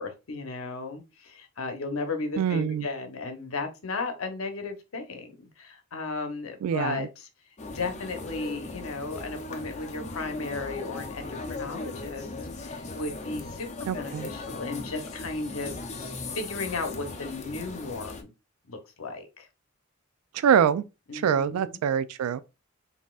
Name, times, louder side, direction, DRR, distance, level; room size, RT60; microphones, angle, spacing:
voice 1, 0.0-7.1 7.7-12.3 12.6-15.8 16.3-18.3 18.7-19.5 21.1-21.8, left 3 dB, 75° left, 0.9 m, -35 dB
voice 2, 2.4-2.9 6.6-7.1 13.9-14.3 20.3-20.8 21.1-22.4, right 8 dB, 90° right, 0.3 m, -24 dB
sound 1, 7.6-18.2, left 3 dB, 35° left, 0.5 m, -38 dB
4.1 x 3.6 x 2.4 m
head